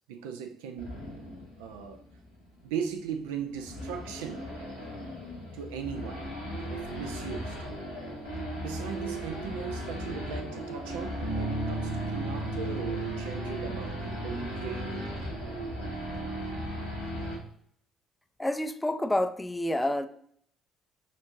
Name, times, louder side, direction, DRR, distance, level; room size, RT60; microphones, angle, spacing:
voice 1, 0.1-1.0 1.6-2.0 2.6-4.4 5.5-6.3 6.7-7.6 8.6-15.1, right 7 dB, 70° right, 0.4 m, -38 dB
Race car auto racing / Idling / Accelerating revving vroom, 0.8-17.4, equal, 85° right, 1.1 m, -37 dB
Bass guitar, 11.2-17.5, right 3 dB, 90° left, 1.0 m, -39 dB
voice 2, 18.4-20.1, left 1 dB, 10° left, 0.3 m, -28 dB
6.0 x 2.6 x 2.7 m
figure-of-eight pair, 50°, 0 cm